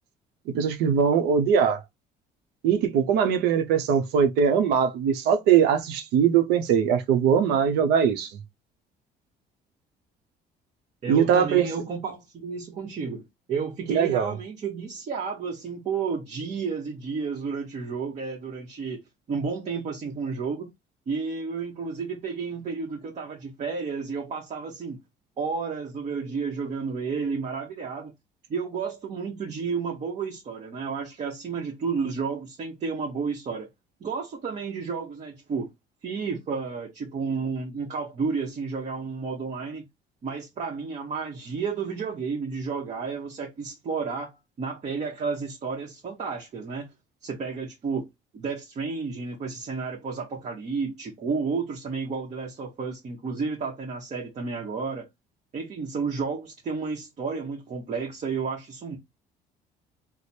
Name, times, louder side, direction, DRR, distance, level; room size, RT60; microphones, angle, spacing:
voice 1, 0.5-1.8 2.6-8.3 11.1-11.7 13.9-14.3, right 7 dB, 85° right, 0.7 m, -21 dB
voice 2, 11.0-13.2 13.5-19.0 19.3-20.7 21.1-25.0 25.4-28.1 28.5-33.7 34.0-35.7 36.0-39.8 40.2-46.9 47.2-48.1 48.3-55.1 55.5-59.0, right 5 dB, 45° right, 0.9 m, -31 dB
3.2 x 2.0 x 4.2 m
cardioid pair, 110°, 17 cm